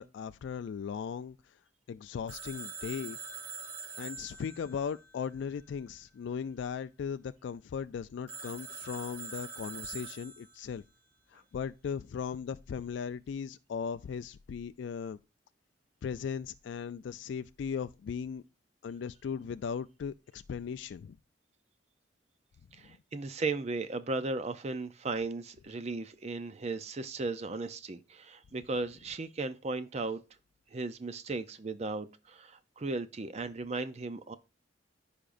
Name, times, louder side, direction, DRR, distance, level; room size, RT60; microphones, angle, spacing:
voice 1, 0.0-1.4 1.9-3.2 4.0-10.8 11.3-15.2 16.0-18.4 18.8-21.2, left 6 dB, 70° left, 0.3 m, -38 dB
Telephone, 2.3-5.9 8.3-10.8, right 5 dB, 70° right, 2.5 m, -44 dB
voice 2, 22.7-30.2 30.7-34.4, right 3 dB, 35° right, 0.5 m, -36 dB
14.5 x 5.1 x 2.5 m
head